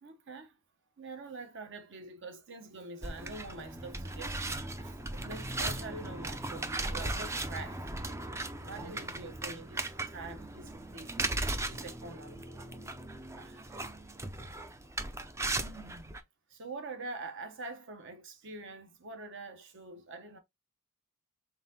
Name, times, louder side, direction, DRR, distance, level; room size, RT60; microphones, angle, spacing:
voice 1, 0.0-0.6 1.0-7.8 8.6-12.6 12.9-13.7 15.0-15.1 15.6-16.2 16.5-20.4, right 3 dB, 55° right, 0.9 m, -45 dB
sound 1, 3.0-16.2, right 2 dB, 15° right, 0.4 m, -37 dB
3.9 x 3.7 x 2.7 m
head